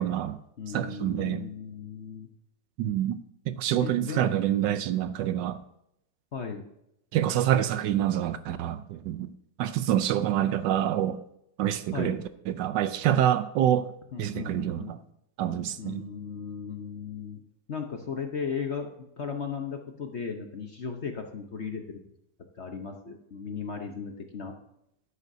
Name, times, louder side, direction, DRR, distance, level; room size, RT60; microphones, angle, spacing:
voice 1, 0.0-0.4 0.7-1.4 2.8-3.2 3.5-5.6 7.1-9.3 9.6-11.2 11.6-13.9 14.2-15.0 15.4-16.1, right 11 dB, 75° right, 1.2 m, -27 dB
voice 2, 0.6-2.3 3.8-4.2 6.3-6.6 11.9-12.2 14.1-15.0 15.8-17.4 17.7-22.0 22.6-24.5, left 6 dB, 50° left, 0.9 m, -36 dB
12.5 x 11.5 x 2.7 m
omnidirectional pair, 2.0 m